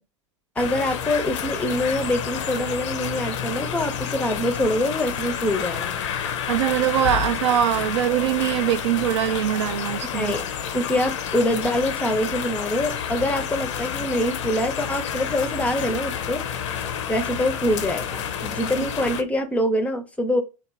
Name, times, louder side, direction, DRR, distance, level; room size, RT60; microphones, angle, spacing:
sound 1, 0.6-19.2, left 8 dB, 60° left, 0.5 m, -29 dB
voice 1, 0.6-6.0 10.1-10.4 10.7-16.4 17.1-20.4, left 1 dB, 10° left, 0.5 m, -25 dB
voice 2, 6.5-10.3 18.8-18.9, right 11 dB, 55° right, 0.4 m, -22 dB
3.0 x 2.3 x 3.4 m
figure-of-eight pair, 85°, 17 cm